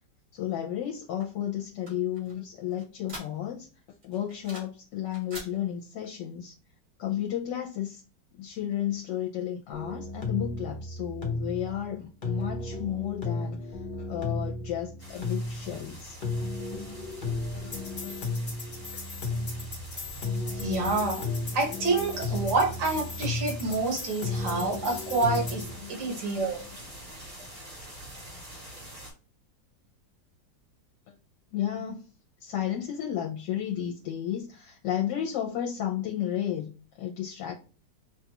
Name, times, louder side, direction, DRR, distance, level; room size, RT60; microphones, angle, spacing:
voice 1, 0.3-3.7 4.0-6.5 7.0-8.0 8.4-16.2 17.6-17.7 18.0-18.1 19.3-19.7 25.8-25.9 26.2-26.6 31.1-31.2 31.5-32.1 32.4-37.5, left 10 dB, 75° left, -1 dB, 1.3 m, -33 dB
sound 1, 1.2-3.7 4.0-4.8 5.1-5.5, right 1 dB, 55° right, 2.7 m, -45 dB
sound 2, 9.7-25.7, left 3 dB, 40° left, 0.7 m, -34 dB
sound 3, 15.0-29.1, right 1 dB, 35° right, 1.6 m, -46 dB
voice 2, 20.5-21.3 21.5-25.6 25.9-26.7, right 3 dB, 85° right, 0 dB, 2.0 m, -28 dB
5.3 x 2.3 x 2.9 m, 0.35 s
omnidirectional pair, 2.0 m